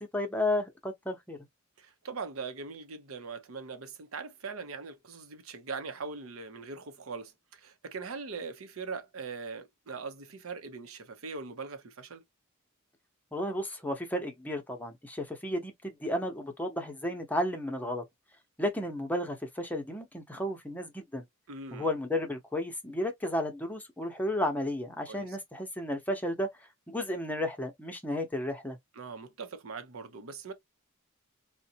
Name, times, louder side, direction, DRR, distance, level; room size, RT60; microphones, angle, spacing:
voice 1, 0.0-1.4 13.3-18.0 18.6-21.2 21.7-26.5 26.9-28.8, left 1 dB, 10° left, 0.7 m, -33 dB
voice 2, 1.8-12.2 21.5-21.9 25.1-25.4 29.0-30.5, right 4 dB, 90° right, 0.7 m, -41 dB
3.7 x 2.2 x 2.7 m
head